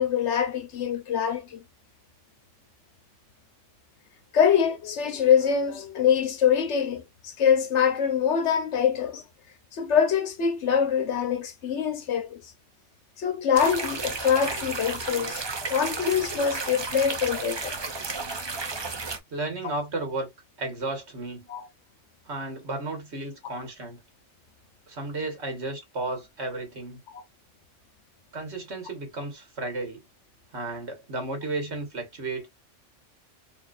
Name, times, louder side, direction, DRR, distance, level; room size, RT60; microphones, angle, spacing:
voice 1, 0.0-1.6 4.3-9.2 9.7-12.4 13.2-17.7 21.5-21.6 23.4-23.5 27.1-27.2, left 7 dB, 70° left, 1.1 m, -24 dB
sound 1, 13.6-19.2, right 3 dB, 30° right, 0.6 m, -33 dB
voice 2, 19.3-20.3 20.6-21.5 22.3-24.0 24.9-27.0 28.3-30.0 30.5-32.5, right 2 dB, 60° right, 1.9 m, -33 dB
4.3 x 2.8 x 2.5 m
omnidirectional pair, 1.3 m